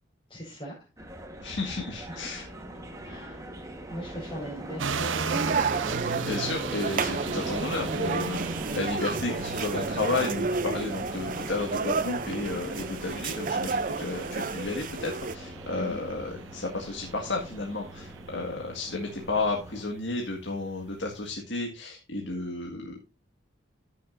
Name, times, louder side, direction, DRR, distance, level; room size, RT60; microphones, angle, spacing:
voice 1, 0.3-0.7 2.1-2.5 3.0-3.5 3.9-5.2 15.7-16.0, equal, 30° left, -5 dB, 5.0 m, -40 dB
sound 1, 1.0-19.9, right 1 dB, 15° right, 1.4 m, -41 dB
voice 2, 1.4-2.4 6.2-23.0, left 3 dB, 65° left, 0 dB, 1.9 m, -32 dB
sound 2, 4.8-21.3, right 4 dB, 80° right, 0.9 m, -38 dB
sound 3, 5.3-15.3, right 4 dB, 45° right, 0.6 m, -31 dB
15.0 x 6.7 x 2.6 m, 0.31 s
head